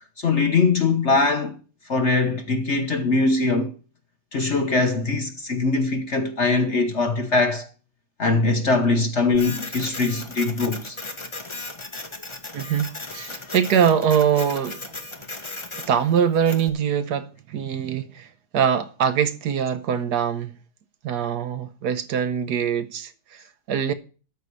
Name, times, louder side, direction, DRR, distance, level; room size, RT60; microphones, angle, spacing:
voice 1, 0.2-1.6 1.9-3.7 4.3-7.7 8.2-11.0, left 3 dB, 50° left, 0.9 m, -22 dB
Printer, 9.3-16.7, left 2 dB, 20° left, 0.9 m, -36 dB
voice 2, 12.5-14.8 15.9-18.3 18.5-20.5 21.0-23.9, right 8 dB, 60° right, 1.3 m, -23 dB
13.0 x 4.7 x 8.2 m
omnidirectional pair, 2.2 m